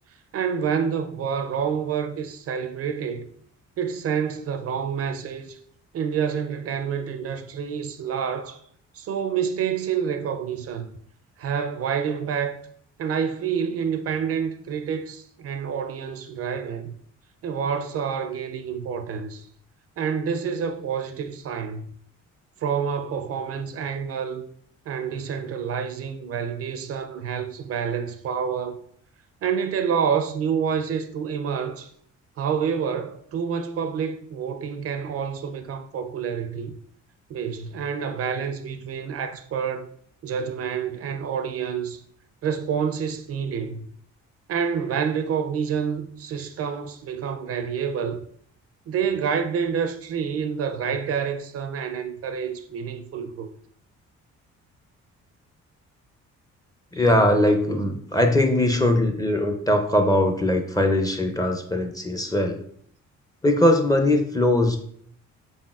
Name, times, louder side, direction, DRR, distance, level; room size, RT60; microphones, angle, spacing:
voice 1, 0.3-3.3 3.8-5.6 5.9-8.6 8.9-10.9 11.4-12.6 13.0-16.9 17.4-19.4 20.0-21.8 22.6-24.5 24.9-28.8 29.4-31.9 32.4-36.8 37.3-39.9 40.2-42.0 42.4-43.9 44.5-48.2 48.9-53.5 56.9-57.1, right 7 dB, 50° right, 0.4 m, -28 dB
voice 2, 56.9-62.6 63.4-64.8, left 1 dB, 10° left, 0.4 m, -21 dB
4.1 x 3.6 x 2.3 m
cardioid pair, 90°, 30 cm